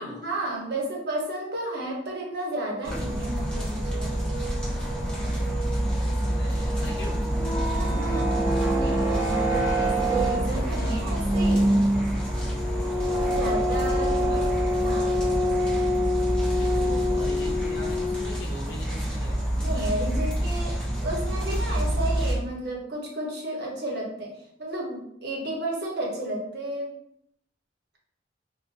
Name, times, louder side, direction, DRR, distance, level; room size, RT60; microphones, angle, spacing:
voice 1, 0.0-4.1 7.7-11.8 13.2-15.1 19.6-24.3 24.6-26.9, right 1 dB, 65° right, -2 dB, 1.0 m, -32 dB
sound 1, 2.8-22.3, equal, 5° left, 1.1 m, -28 dB
voice 2, 6.1-7.2 14.3-14.4 16.6-19.4, left 1 dB, 75° left, -1 dB, 0.6 m, -40 dB
sound 2, 7.2-18.4, equal, 10° right, 0.5 m, -26 dB
4.1 x 2.4 x 2.6 m, 0.73 s
head